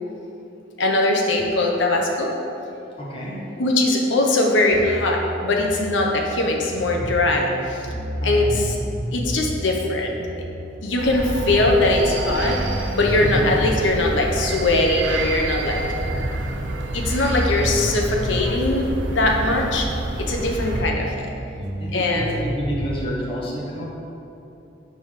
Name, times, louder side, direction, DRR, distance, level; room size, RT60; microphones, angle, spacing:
voice 1, 0.8-2.3 3.6-7.9 8.2-8.7 9.1-10.2 10.8-15.8 16.9-19.9 20.2-21.1 21.9-22.4, left 2 dB, 80° left, 0 dB, 0.8 m, -21 dB
voice 2, 3.0-3.4 8.2-8.5 13.2-13.5 19.3-19.6 21.8-23.8, equal, 30° left, -5 dB, 1.3 m, -30 dB
sound 1, 4.7-11.0 11.3-15.6 15.9-20.1 20.4-23.0, equal, 60° right, 1.0 m, -31 dB
sound 2, 11.0-20.8, right 2 dB, 80° right, 0.7 m, -28 dB
5.3 x 4.8 x 5.8 m, 2.9 s
head